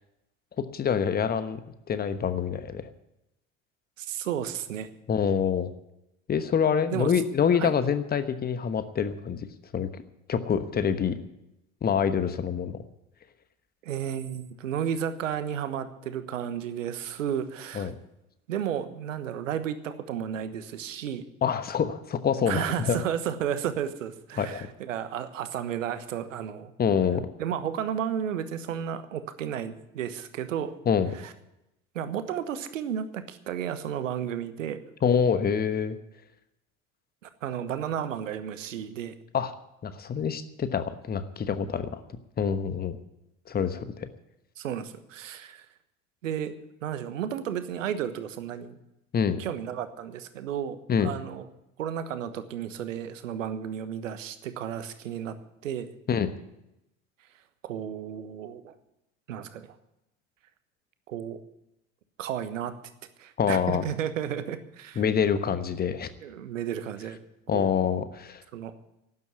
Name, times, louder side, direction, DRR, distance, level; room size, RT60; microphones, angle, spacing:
voice 1, 0.7-1.6 1.9-2.9 5.1-5.7 6.3-9.5 9.7-10.0 10.3-11.2 11.8-12.8 17.7-17.9 21.4-23.0 24.4-24.7 26.8-27.3 30.9-31.1 35.0-36.0 39.3-39.5 39.8-42.0 42.4-43.0 43.5-44.1 49.1-49.4 50.9-51.1 56.1-56.3 63.4-63.8 65.0-66.1 67.5-68.4, left 7 dB, 25° left, 11 dB, 1.2 m, -26 dB
voice 2, 4.0-4.9 6.9-7.1 7.6-7.7 13.8-17.9 18.5-21.2 22.5-26.7 27.4-30.7 31.2-31.3 31.9-34.8 37.2-39.1 44.6-45.6 46.2-46.5 46.8-48.8 49.4-51.5 51.8-55.4 55.6-55.9 57.6-58.7 59.3-59.7 61.1-61.4 62.2-62.7 63.2-65.0 66.2-67.2 67.5-67.7 68.5-68.7, right 9 dB, 70° right, 11 dB, 1.3 m, -33 dB
12.0 x 9.6 x 9.7 m, 0.88 s
figure-of-eight pair, 70°, 40 cm